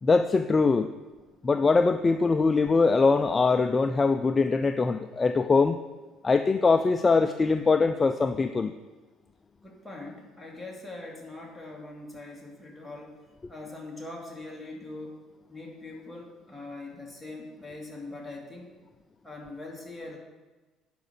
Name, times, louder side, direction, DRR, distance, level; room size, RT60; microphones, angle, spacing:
voice 1, 0.0-0.9 1.4-5.8 6.2-8.7, left 4 dB, 25° left, 8 dB, 0.4 m, -22 dB
voice 2, 9.6-13.2 13.5-18.7 19.2-20.2, left 2 dB, ahead, -2 dB, 2.3 m, -42 dB
10.5 x 5.1 x 7.0 m, 1.2 s
cardioid pair, 105°, 0 cm